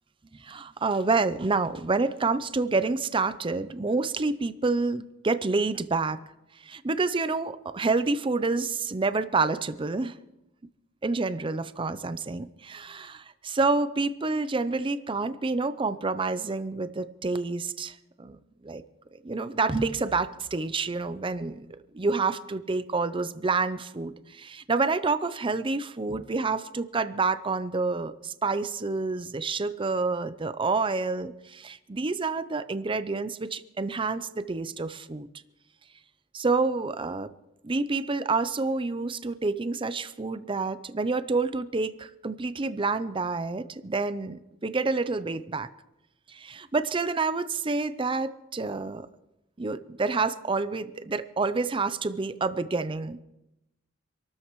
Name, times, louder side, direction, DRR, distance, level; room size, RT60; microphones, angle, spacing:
voice 1, 0.3-6.2 6.6-10.2 11.0-18.4 18.6-18.8 19.1-35.3 36.3-37.3 37.6-45.7 46.3-49.1 49.6-53.2, right 3 dB, 25° right, 13 dB, 0.6 m, -28 dB
26.5 x 13.0 x 3.1 m, 0.91 s
head